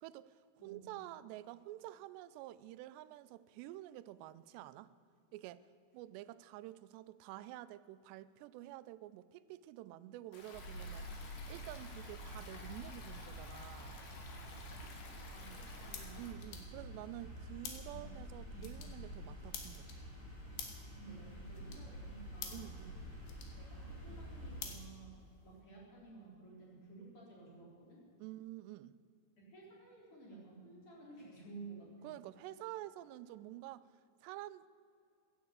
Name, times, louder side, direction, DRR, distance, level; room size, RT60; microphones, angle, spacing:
voice 1, 0.0-4.9 5.3-5.7 5.9-11.1 11.5-14.0 16.1-20.0 22.5-23.1 28.2-29.0 32.0-33.9 34.2-34.7, right 15 dB, 85° right, 16 dB, 2.7 m, -49 dB
voice 2, 0.6-0.9 15.3-16.2 17.8-18.2 18.5-18.7 20.9-22.7 23.6-25.2 25.4-28.0 29.4-32.2, right 3 dB, 35° left, -4 dB, 4.6 m, -54 dB
Stream, 10.3-16.3, left 3 dB, 65° left, 3.7 m, -54 dB
sound 1, 10.5-24.7, equal, 15° left, 3.3 m, -49 dB
sound 2, 14.1-25.6, left 7 dB, 80° left, 3.8 m, -53 dB
16.0 x 11.0 x 8.0 m, 2.4 s
omnidirectional pair, 4.8 m